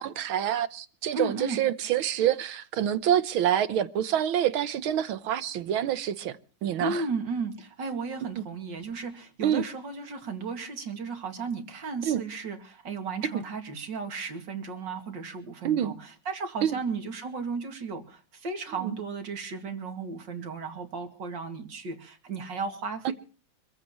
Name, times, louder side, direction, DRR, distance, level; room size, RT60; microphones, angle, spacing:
voice 1, 0.0-7.0 8.4-8.5 9.4-9.6 12.0-12.2 13.3-13.4 15.6-15.9 16.6-16.7 18.8-19.0 23.1-23.2, right 10 dB, 85° right, 1.8 m, -27 dB
voice 2, 1.1-1.6 6.8-23.1, right 4 dB, 65° right, 2.9 m, -35 dB
25.5 x 15.5 x 3.1 m
omnidirectional pair, 2.2 m